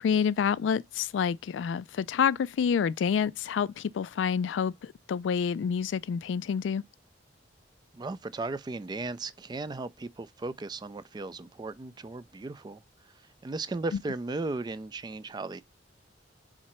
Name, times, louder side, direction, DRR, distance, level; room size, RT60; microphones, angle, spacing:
voice 1, 0.0-6.8, left 7 dB, 90° left, 0.3 m, -28 dB
voice 2, 7.9-15.6, right 3 dB, 25° right, 0.3 m, -36 dB
4.3 x 3.8 x 3.0 m
head